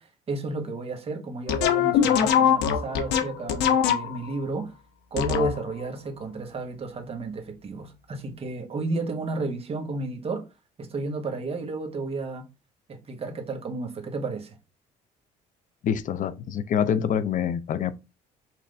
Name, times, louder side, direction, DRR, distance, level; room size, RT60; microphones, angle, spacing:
voice 1, 0.0-4.7 5.1-10.5 10.8-12.5 12.9-14.6, right 3 dB, 35° right, 1.2 m, -32 dB
sound 1, 1.5-4.3 5.2-5.8, left 8 dB, 90° left, 0.7 m, -22 dB
voice 2, 15.8-17.9, left 8 dB, 50° left, 0.5 m, -26 dB
5.8 x 2.6 x 3.3 m
cardioid pair, 110°, 17 cm